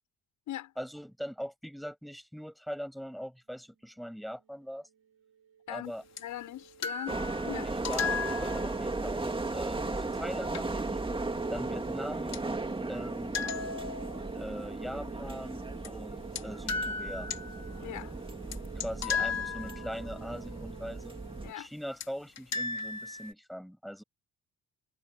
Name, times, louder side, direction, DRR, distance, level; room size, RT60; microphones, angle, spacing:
voice 1, 0.8-4.9 5.7-6.0 7.7-11.0 11.5-12.4 12.9-13.4 14.3-17.3 18.8-21.2 21.5-24.0, equal, ahead, 7.9 m, -41 dB
sound 1, 4.4-21.4, right 8 dB, 50° right, 6.0 m, -52 dB
voice 2, 6.2-7.7 17.8-18.1 21.4-21.7, left 13 dB, 80° left, 7.2 m, -40 dB
sound 2, 6.2-6.3 6.8-9.0 10.5-10.6 12.3-12.4 13.3-14.4 15.8-15.9 16.4-16.5 16.7-17.9 18.5-18.6 18.8-20.0 22.0-22.1 22.4-23.3, left 5 dB, 60° left, 3.4 m, -35 dB
sound 3, 7.1-21.5, right 2 dB, 15° right, 2.5 m, -36 dB
cardioid pair, 90°, 30 cm